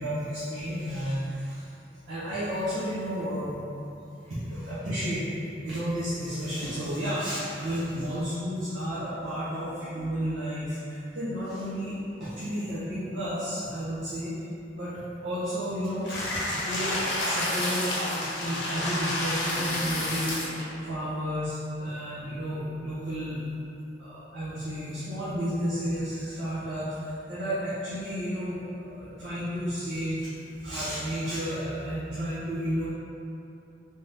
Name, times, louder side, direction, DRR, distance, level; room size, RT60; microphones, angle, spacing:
voice 1, 0.0-1.7 2.1-3.5 4.2-5.3 5.6-14.3 14.7-20.3 20.9-23.4 24.0-32.8, equal, 90° right, -13 dB, 0.8 m, -32 dB
sound 1, 16.0-20.6, left 1 dB, 75° left, 0.9 m, -30 dB
3.5 x 2.7 x 3.4 m, 2.7 s
head